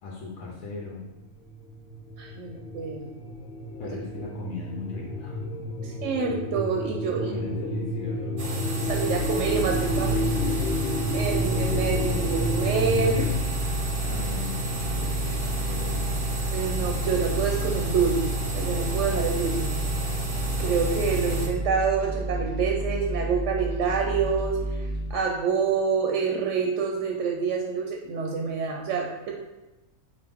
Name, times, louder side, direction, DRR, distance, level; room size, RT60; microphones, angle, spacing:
voice 1, 0.0-1.1 3.8-5.4 5.8-5.9 7.0-8.4 10.0-10.8 14.0-16.2, left 3 dB, 85° left, -3 dB, 1.2 m, -38 dB
sound 1, 1.3-13.3, left 1 dB, 65° left, 0.8 m, -31 dB
voice 2, 2.2-3.1 5.8-7.3 8.9-10.1 11.1-13.4 16.5-19.7 20.6-24.8 25.1-29.3, right 5 dB, 70° right, 1 dB, 0.9 m, -27 dB
sound 2, 8.4-21.5, right 1 dB, 45° right, 0.6 m, -31 dB
sound 3, 8.9-25.1, right 1 dB, 20° left, 1.1 m, -31 dB
4.9 x 2.5 x 3.4 m, 1.0 s
omnidirectional pair, 1.5 m